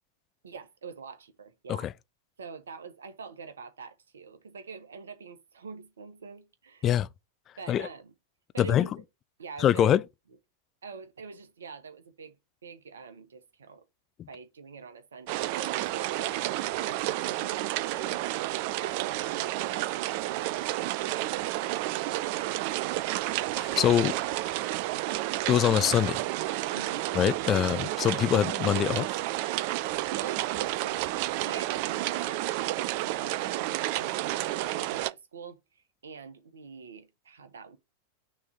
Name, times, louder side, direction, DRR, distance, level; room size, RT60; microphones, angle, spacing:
voice 1, 0.4-1.9 2.4-7.0 7.6-8.1 8.5-9.0 9.4-9.9 10.8-12.3 12.6-13.8 14.3-18.3 18.7-21.3 26.7-27.1 29.7-34.3 34.6-37.8, right 5 dB, 70° right, 1.4 m, -45 dB
voice 2, 9.6-10.0 14.2-14.3 23.6-24.2 25.1-25.2 25.5-26.2 27.1-29.2, left 10 dB, 30° left, 0.4 m, -24 dB
sound 1, 15.3-35.1, right 16 dB, 45° right, 0.4 m, -31 dB
6.2 x 3.4 x 5.9 m
figure-of-eight pair, 90°, 0 cm